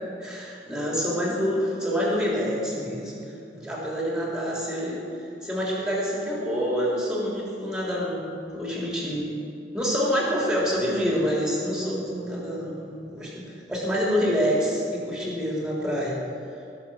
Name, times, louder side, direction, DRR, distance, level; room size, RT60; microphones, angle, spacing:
voice 1, 0.2-3.1 3.5-5.0 5.4-9.3 9.7-16.2, equal, 5° right, -5 dB, 3.4 m, -27 dB
18.0 x 7.1 x 6.2 m, 2.5 s
head